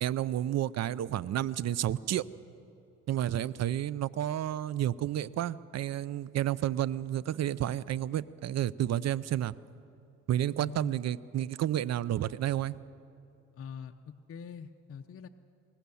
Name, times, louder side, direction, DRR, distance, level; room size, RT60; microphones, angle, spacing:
voice 1, 0.0-2.3 3.1-9.5 10.3-12.8, right 12 dB, 60° right, 19 dB, 0.6 m, -31 dB
voice 2, 10.6-11.0 13.6-15.3, left 7 dB, 50° left, 6 dB, 0.7 m, -44 dB
22.5 x 19.0 x 7.0 m, 2.7 s
cardioid pair, 90°, 30 cm